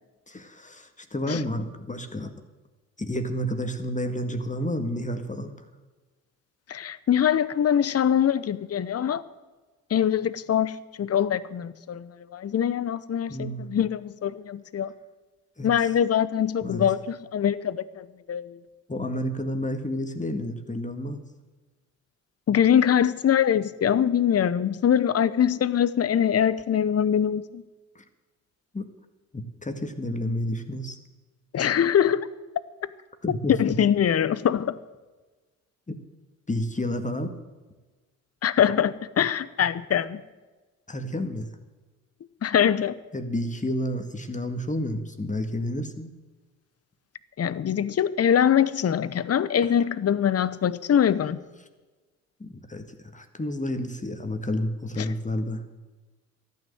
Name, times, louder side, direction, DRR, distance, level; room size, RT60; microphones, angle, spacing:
voice 1, 0.3-2.3 3.0-5.5 13.3-13.7 15.6-15.7 16.6-16.9 18.9-21.2 28.0-28.1 28.7-28.9 29.3-31.0 33.2-33.7 35.9-36.0 36.5-37.4 40.9-41.5 43.1-46.1 49.6-49.7 52.4-55.6, left 1 dB, 20° left, 7 dB, 1.8 m, -30 dB
voice 2, 6.7-9.2 9.9-14.9 15.6-18.6 22.5-27.6 31.5-32.3 32.8-32.9 33.3-34.8 38.4-40.2 42.4-43.0 47.4-51.4, left 9 dB, 35° left, 17 dB, 0.8 m, -23 dB
14.0 x 9.4 x 7.9 m, 1.3 s
hypercardioid pair, 45°, 41 cm